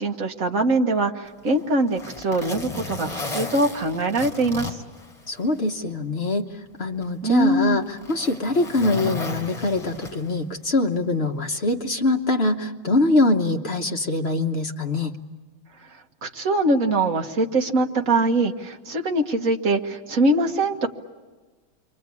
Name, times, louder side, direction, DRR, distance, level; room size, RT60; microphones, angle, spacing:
voice 1, 0.0-4.8 7.2-7.8 16.2-20.9, right 2 dB, 45° right, 4 dB, 1.7 m, -22 dB
Zipper (clothing), 1.3-5.7 6.1-6.2 7.0-10.5 11.6-11.8, left 3 dB, 20° left, 3.4 m, -35 dB
voice 2, 5.3-6.5 6.8-15.1, left 2 dB, 40° left, 3 dB, 1.1 m, -23 dB
28.5 x 24.5 x 8.5 m, 1.3 s
omnidirectional pair, 2.1 m